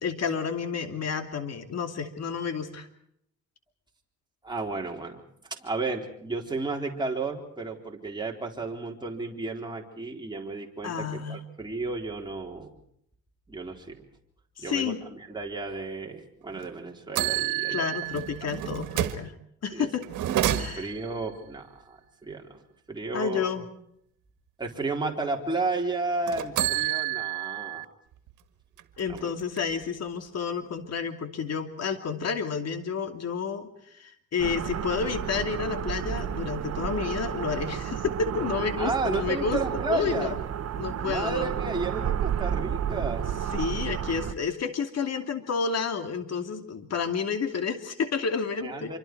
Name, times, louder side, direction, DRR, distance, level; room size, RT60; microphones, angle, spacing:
voice 1, 0.0-2.9 10.8-11.4 14.6-15.0 17.7-19.3 19.6-20.1 20.6-20.9 23.1-23.7 29.0-33.7 34.0-39.6 39.9-40.4 40.8-41.5 43.5-49.0, left 6 dB, 55° left, 7 dB, 2.8 m, -30 dB
voice 2, 4.4-5.2 5.5-12.7 13.5-14.0 14.6-17.9 19.7-19.9 20.4-22.6 22.9-23.6 24.6-27.9 29.1-29.3 38.8-40.3 41.0-43.3 48.6-49.0, right 3 dB, 15° right, 0 dB, 4.0 m, -33 dB
sound 1, 16.5-16.7 17.2-19.3 20.0-21.1 26.2-27.9 28.3-28.4 28.8-29.8, right 13 dB, 80° right, 1.8 m, -29 dB
sound 2, 34.4-44.3, right 9 dB, 55° right, 1.1 m, -31 dB
26.5 x 24.5 x 4.7 m, 0.71 s
cardioid pair, 90°, 30 cm